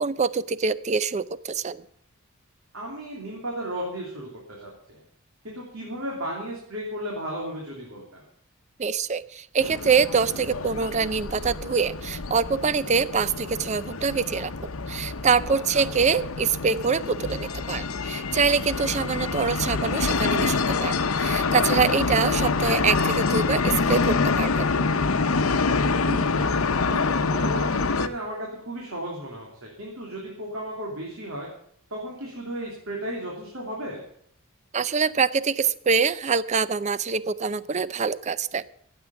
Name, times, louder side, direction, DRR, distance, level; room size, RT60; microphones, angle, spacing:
voice 1, 0.0-1.8 8.8-24.6 34.7-38.7, right 5 dB, 35° right, 17 dB, 0.5 m, -25 dB
voice 2, 2.7-5.0 5.4-8.2 15.4-15.9 26.0-26.5 26.9-31.5 31.9-34.0, right 1 dB, 75° right, -2 dB, 3.2 m, -34 dB
sound 1, 9.6-28.1, left 4 dB, 80° left, 0.8 m, -26 dB
15.5 x 8.0 x 7.0 m, 0.66 s
head